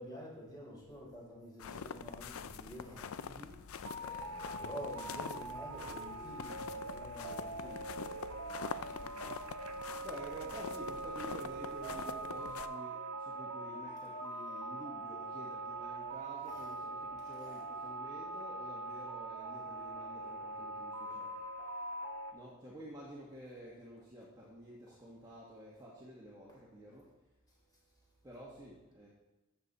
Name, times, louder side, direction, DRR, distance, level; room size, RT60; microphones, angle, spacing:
voice 1, 0.0-3.4 4.0-7.8 16.5-16.6 17.2-17.6, equal, 20° left, -4 dB, 3.6 m, -49 dB
sound 1, 1.6-12.7, left 6 dB, 70° left, 0.5 m, -45 dB
voice 2, 3.2-3.6 8.9-9.7 10.0-21.4 22.3-27.1 28.2-29.1, equal, 15° right, -6 dB, 1.6 m, -51 dB
sound 2, 3.8-22.3, right 2 dB, 85° right, 1.0 m, -43 dB
13.0 x 7.1 x 4.2 m, 1.0 s
head